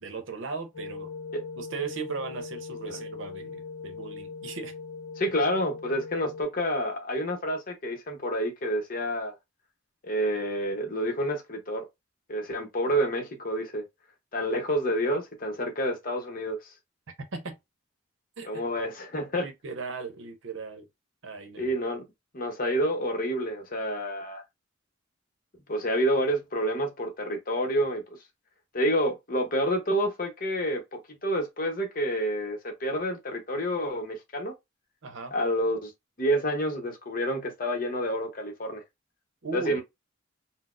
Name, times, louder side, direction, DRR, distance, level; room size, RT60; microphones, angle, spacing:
voice 1, 0.0-1.1 1.6-4.7 5.2-5.3 17.3-17.6 18.4-18.6 19.4-20.9 21.2-21.7 35.0-35.3 39.4-39.8, right 4 dB, 75° right, 0.7 m, -37 dB
sound 1, 0.7-6.4, left 4 dB, 75° left, 0.7 m, -40 dB
voice 2, 5.2-9.4 10.0-11.8 12.3-13.9 14.3-16.6 18.4-19.5 21.6-22.0 22.3-24.4 25.7-28.0 28.7-34.5 35.3-35.9 36.2-38.8 39.5-39.8, equal, 45° left, 0.8 m, -28 dB
3.9 x 2.0 x 2.4 m
head